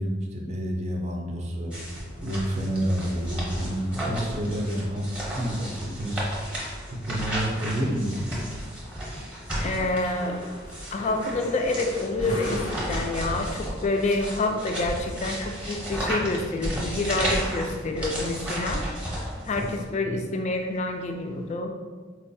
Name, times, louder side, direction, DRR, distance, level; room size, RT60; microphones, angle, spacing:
voice 1, 0.0-1.7 2.2-6.2 6.9-8.3, equal, 35° right, 0 dB, 0.5 m, -29 dB
sound 1, 1.7-19.8, equal, 5° right, 0.8 m, -33 dB
sound 2, 2.0-21.5, left 1 dB, 80° left, 0.6 m, -46 dB
voice 2, 9.6-10.4 10.9-18.8 19.5-21.7, left 2 dB, 35° left, 4 dB, 0.3 m, -28 dB
4.2 x 2.3 x 2.6 m, 1.4 s
head